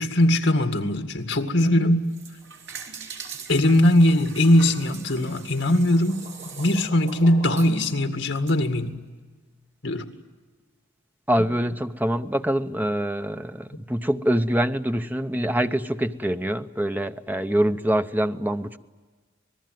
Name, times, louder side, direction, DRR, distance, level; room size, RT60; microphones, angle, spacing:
voice 1, 0.0-2.0 3.5-6.2 6.6-8.9 9.8-10.0, left 1 dB, 65° left, 6 dB, 2.1 m, -20 dB
sound 1, 1.9-8.5, right 4 dB, 60° right, 3.3 m, -41 dB
voice 2, 11.3-18.8, right 1 dB, 10° right, 9 dB, 0.7 m, -25 dB
27.0 x 20.0 x 9.2 m, 1.4 s
head